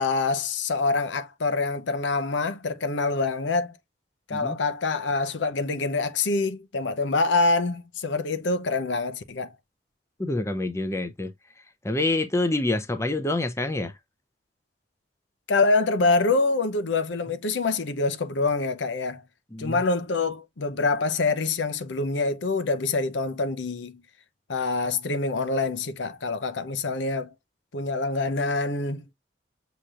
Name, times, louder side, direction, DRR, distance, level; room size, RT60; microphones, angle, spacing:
voice 1, 0.0-3.8 4.3-9.5 15.5-19.2 19.6-24.0 24.5-27.3 27.7-29.1, left 3 dB, 90° left, 0.7 m, -25 dB
voice 2, 10.2-11.3 11.8-13.9 19.5-19.8, left 2 dB, 15° left, 0.6 m, -27 dB
6.4 x 2.9 x 2.4 m
head